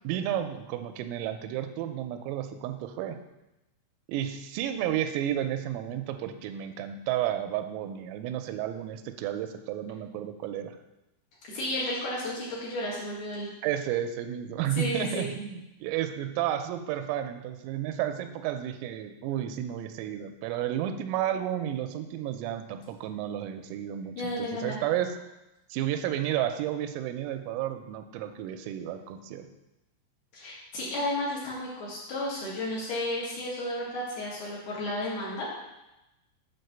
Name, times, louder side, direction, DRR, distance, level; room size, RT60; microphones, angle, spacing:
voice 1, 0.0-3.2 4.1-10.8 13.6-25.1 25.7-29.5, right 11 dB, 85° right, 7 dB, 3.3 m, -32 dB
voice 2, 11.5-13.5 14.8-15.3 24.1-24.8 30.3-35.5, left 1 dB, 60° left, -6 dB, 3.1 m, -32 dB
8.4 x 4.6 x 6.7 m, 0.96 s
omnidirectional pair, 5.9 m